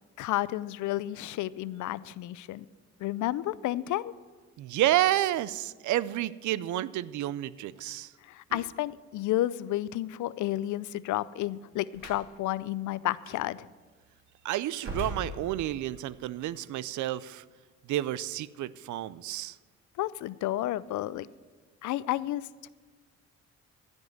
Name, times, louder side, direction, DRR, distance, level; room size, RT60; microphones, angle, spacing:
voice 1, 0.2-2.7 3.0-4.1 8.2-13.7 20.0-21.3 21.8-22.7, left 15 dB, 75° left, 19 dB, 0.5 m, -31 dB
voice 2, 4.6-8.1 14.4-17.4 17.9-19.6, right 14 dB, 75° right, 18 dB, 0.5 m, -30 dB
Slam, 11.9-12.3 13.2-13.4 14.7-16.0, equal, 45° right, 2.9 m, -39 dB
15.0 x 5.4 x 7.9 m, 1.4 s
cardioid pair, 90°, 30 cm